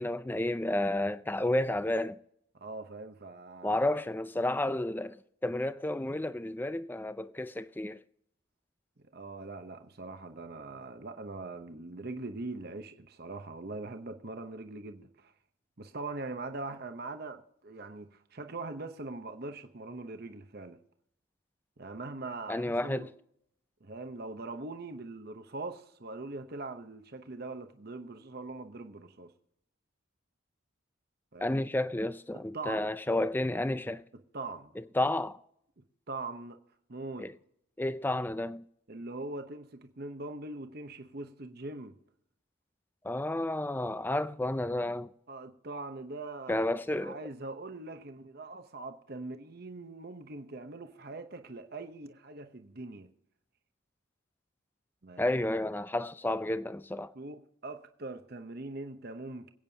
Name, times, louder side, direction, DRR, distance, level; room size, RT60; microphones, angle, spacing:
voice 1, 0.0-2.2 3.6-8.0 22.5-23.1 31.4-34.1 34.8-35.4 37.2-37.3 37.8-38.6 43.0-45.1 46.5-47.2 55.2-57.1, left 1 dB, 10° left, 0.3 m, -31 dB
voice 2, 2.5-3.8 9.1-15.3 15.8-20.8 21.8-23.1 23.8-29.3 31.3-31.5 32.3-32.9 34.3-34.7 36.1-36.6 36.9-37.3 38.9-42.0 45.3-46.6 47.0-53.1 55.0-55.4 57.1-59.5, right 2 dB, 45° right, 0.8 m, -42 dB
26.0 x 8.8 x 2.8 m
head